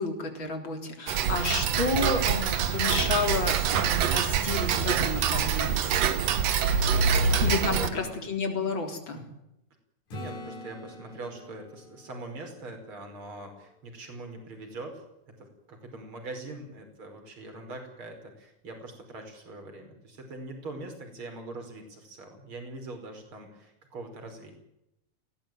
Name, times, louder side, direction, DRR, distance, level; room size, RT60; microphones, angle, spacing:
voice 1, 0.0-5.9 7.4-9.2, left 4 dB, 40° left, 4 dB, 4.3 m, -31 dB
Tick-tock, 1.1-7.9, right 7 dB, 60° right, 2.4 m, -25 dB
voice 2, 6.9-8.3 9.1-9.4 10.1-24.6, right 2 dB, 45° right, 4 dB, 5.9 m, -42 dB
Acoustic guitar / Strum, 10.1-13.9 18.7-18.8, left 1 dB, 75° left, 5.9 m, -45 dB
21.0 x 17.0 x 9.3 m, 0.84 s
omnidirectional pair, 3.4 m